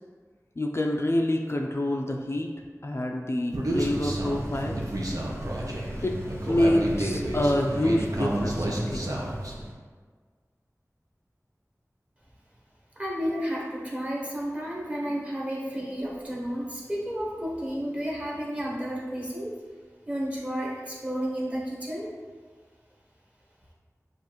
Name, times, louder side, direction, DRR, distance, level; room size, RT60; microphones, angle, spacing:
voice 1, 0.6-2.5 2.8-4.9 6.0-6.2 6.5-9.3, left 1 dB, 45° left, 1 dB, 0.4 m, -27 dB
Human voice, 3.5-9.5, right 1 dB, 70° right, 0.7 m, -31 dB
sound 1, 3.7-9.7, right 1 dB, 50° right, 0.9 m, -35 dB
voice 2, 13.0-19.5 20.1-22.1, equal, 20° right, -4 dB, 1.1 m, -32 dB
6.6 x 2.5 x 3.0 m, 1.5 s
wide cardioid pair, 40°, 6 cm